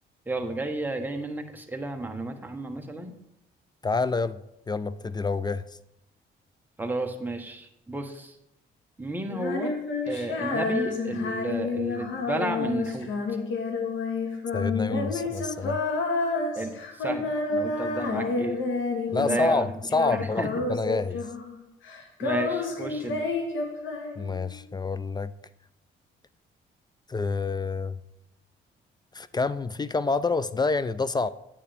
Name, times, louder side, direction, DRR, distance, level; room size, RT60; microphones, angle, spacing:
voice 1, 0.3-3.2 6.8-8.3 9.0-9.8 10.1-13.1 16.5-18.6 19.1-19.7 20.1-20.5 22.2-23.2, right 2 dB, 10° right, 4 dB, 1.2 m, -32 dB
voice 2, 3.8-4.4 4.7-5.6 14.5-15.8 19.1-21.2 24.2-25.3 27.1-28.0 29.1-31.3, left 3 dB, 20° left, 15 dB, 0.4 m, -27 dB
Female singing, 9.3-19.6 19.9-21.6 21.8-24.5, left 3 dB, 80° left, 1.6 m, -29 dB
8.6 x 8.4 x 3.5 m, 0.83 s
cardioid pair, 90°, 20 cm